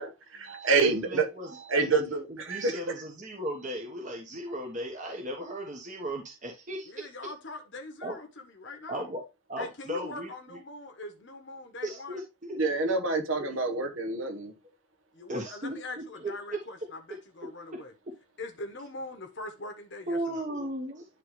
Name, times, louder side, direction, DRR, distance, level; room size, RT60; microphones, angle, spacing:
voice 1, 0.0-2.8 12.5-14.5, right 4 dB, 70° right, 1.4 m, -28 dB
voice 2, 0.8-1.9 2.3-7.3 8.0-8.2 8.9-9.2 9.5-10.3 11.8-12.2 13.5-13.6 15.3-16.6 17.4-17.5 20.1-21.0, right 1 dB, 35° right, 1.2 m, -36 dB
voice 3, 6.9-9.0 9.6-12.2 15.1-17.9 18.4-20.4, left 2 dB, 55° left, 1.3 m, -42 dB
11.0 x 3.9 x 3.2 m
head